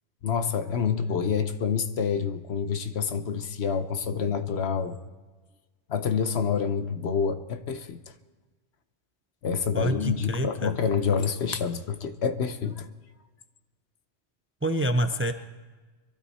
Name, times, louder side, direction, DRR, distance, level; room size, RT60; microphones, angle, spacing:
voice 1, 0.2-5.0 5.9-8.0 9.4-12.9, left 6 dB, 70° left, 10 dB, 1.1 m, -27 dB
voice 2, 9.7-10.7 14.6-15.3, right 1 dB, 15° right, 8 dB, 0.5 m, -27 dB
23.0 x 12.5 x 4.2 m, 1.3 s
omnidirectional pair, 1.1 m